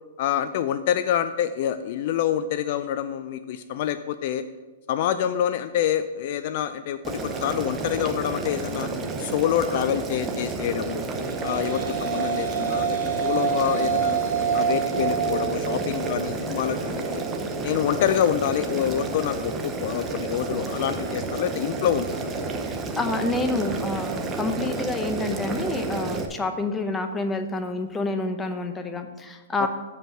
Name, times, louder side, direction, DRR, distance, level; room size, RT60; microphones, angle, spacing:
voice 1, 0.2-4.4 4.9-8.9 9.2-11.1 11.4-14.2 14.5-17.2 17.6-22.2 29.6-29.7, left 10 dB, 50° left, 12 dB, 0.4 m, -26 dB
Boiling, 7.0-26.3, right 3 dB, 20° right, 0.8 m, -31 dB
sound 1, 11.0-19.5, right 8 dB, 60° right, 2.0 m, -29 dB
voice 2, 22.6-29.7, left 2 dB, 10° left, 6 dB, 0.7 m, -28 dB
7.5 x 5.3 x 6.3 m, 1.2 s
hypercardioid pair, 140°, 0 cm